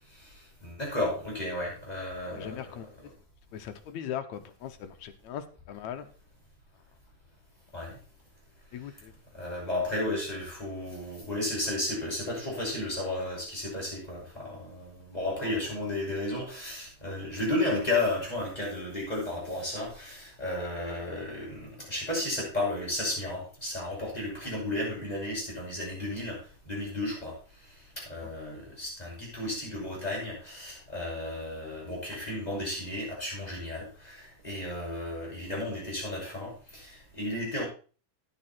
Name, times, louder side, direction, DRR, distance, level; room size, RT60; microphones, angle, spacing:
voice 1, 0.6-2.6 7.7-8.0 9.3-26.4 26.7-27.4 28.0-37.6, left 1 dB, 10° left, -5 dB, 5.8 m, -33 dB
voice 2, 2.3-2.9 3.5-6.1 8.7-9.1 15.4-15.5 28.2-28.3, left 9 dB, 75° left, 8 dB, 2.0 m, -39 dB
10.5 x 9.4 x 4.3 m, 0.37 s
omnidirectional pair, 3.6 m